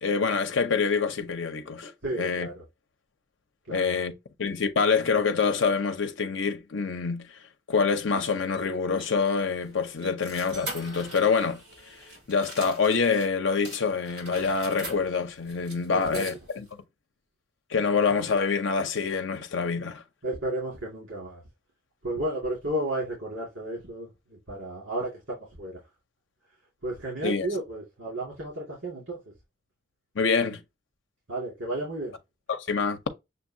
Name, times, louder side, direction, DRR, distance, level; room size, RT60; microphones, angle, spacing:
voice 1, 0.0-1.9 2.2-2.5 3.7-4.1 4.4-7.4 7.7-11.6 12.3-16.7 17.7-20.0 27.2-27.5 30.1-30.6 32.5-33.1, left 5 dB, 75° left, 0.7 m, -26 dB
voice 2, 2.0-2.6 3.7-3.9 15.9-16.3 20.2-21.4 22.0-25.9 26.8-29.3 31.3-32.2, right 1 dB, 85° right, 2.1 m, -33 dB
sound 1, 8.5-13.3 13.6-16.7, right 2 dB, 55° right, 2.9 m, -43 dB
6.7 x 2.3 x 2.7 m
head